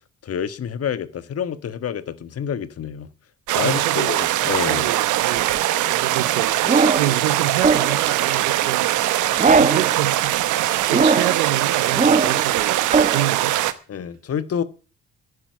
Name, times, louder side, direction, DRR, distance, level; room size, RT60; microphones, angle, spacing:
voice 1, 0.2-3.1 3.5-4.9 13.9-14.6, left 8 dB, 50° left, 1.4 m, -28 dB
sound 1, 3.5-13.7, right 14 dB, 70° right, 1.1 m, -21 dB
voice 2, 3.6-4.1 4.5-5.5 5.9-13.6, right 14 dB, 90° right, 0.7 m, -28 dB
sound 2, 6.6-7.2 7.6-8.1 9.4-9.9 10.9-11.4 11.9-12.5 12.9-13.2, right 4 dB, 25° right, 1.0 m, -19 dB
11.0 x 10.5 x 8.1 m
hypercardioid pair, 50°, 31 cm